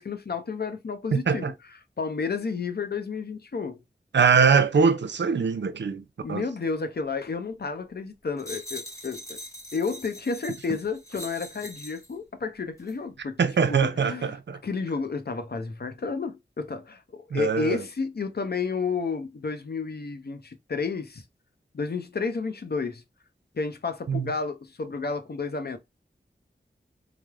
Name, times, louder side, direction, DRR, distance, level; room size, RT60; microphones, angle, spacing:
voice 1, 0.0-1.5 2.0-3.8 6.2-9.4 9.7-13.4 13.7-14.4 14.6-21.2 21.7-23.0 23.5-25.8, left 4 dB, 55° left, 0.6 m, -31 dB
voice 2, 1.1-1.5 4.1-6.0 6.3-6.4 13.4-14.6 17.3-17.8 24.1-24.3, right 5 dB, 70° right, 0.5 m, -22 dB
sound 1, 8.4-12.1 12.8-13.0, equal, 15° left, 1.0 m, -42 dB
3.2 x 2.0 x 2.3 m
wide cardioid pair, 45°, 19 cm